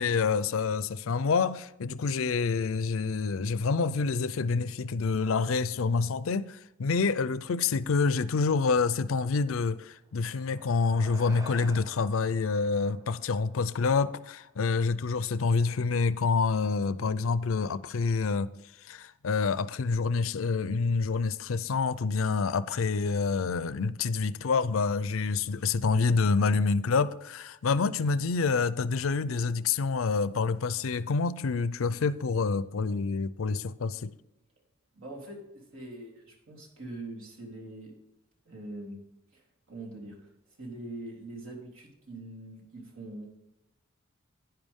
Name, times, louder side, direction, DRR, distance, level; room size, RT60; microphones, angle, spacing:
voice 1, 0.0-18.5 18.9-34.1, left 4 dB, 85° left, 0.5 m, -27 dB
sound 1, 10.1-14.8, right 1 dB, 15° right, 0.8 m, -51 dB
voice 2, 34.9-37.9 38.5-39.0 39.3-40.3 40.6-43.3, right 2 dB, 90° right, 3.4 m, -43 dB
10.5 x 10.0 x 3.6 m
head